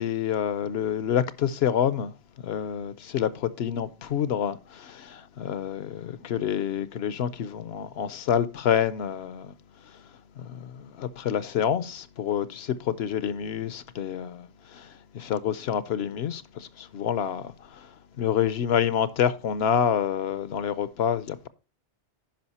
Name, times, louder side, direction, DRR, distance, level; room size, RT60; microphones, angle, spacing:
voice 1, 0.0-2.1 2.4-9.5 10.4-14.9 15.1-17.5 18.2-21.5, left 9 dB, 70° left, 0.8 m, -27 dB
10.5 x 5.2 x 4.1 m
omnidirectional pair, 1.2 m